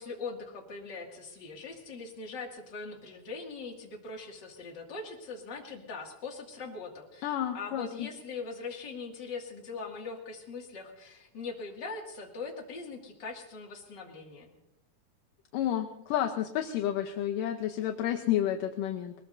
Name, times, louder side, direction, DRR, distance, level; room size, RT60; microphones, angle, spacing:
voice 1, 0.0-14.5, left 4 dB, 35° left, -1 dB, 2.3 m, -41 dB
voice 2, 7.2-8.1 15.5-19.1, left 11 dB, 75° left, 3 dB, 2.3 m, -30 dB
21.5 x 20.0 x 2.6 m, 0.88 s
omnidirectional pair, 4.2 m